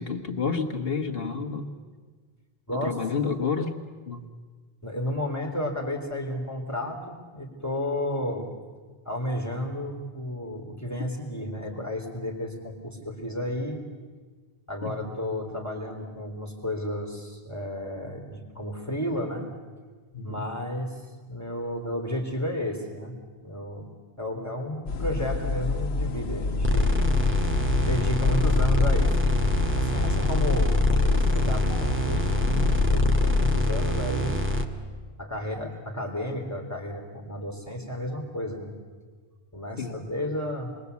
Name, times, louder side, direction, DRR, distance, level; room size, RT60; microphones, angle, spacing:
voice 1, 0.0-1.7 2.8-3.8 4.1-4.3 14.8-15.1 20.1-20.4 39.8-40.0, left 5 dB, 65° left, 4 dB, 1.8 m, -30 dB
voice 2, 2.7-3.0 4.8-8.5 9.1-13.8 14.7-19.5 20.2-23.1 23.4-23.9 24.2-27.0 27.8-29.4 29.7-34.5 35.2-38.7 39.5-40.7, left 1 dB, 15° left, 1 dB, 3.6 m, -32 dB
sound 1, 24.9-33.6, left 3 dB, 90° left, 1.2 m, -29 dB
sound 2, 26.6-34.6, left 2 dB, 10° right, 2.0 m, -24 dB
29.0 x 22.0 x 8.3 m, 1.5 s
omnidirectional pair, 1.0 m